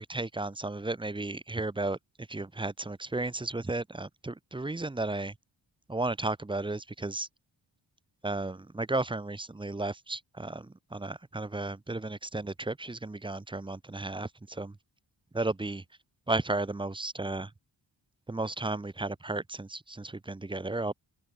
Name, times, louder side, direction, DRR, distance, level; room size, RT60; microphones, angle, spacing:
voice 1, 0.0-5.4 5.9-7.3 8.2-14.8 15.3-15.8 16.3-17.5 18.3-20.9, right 2 dB, 10° right, 0.5 m, -34 dB
open air
wide cardioid pair, 95°, 48 cm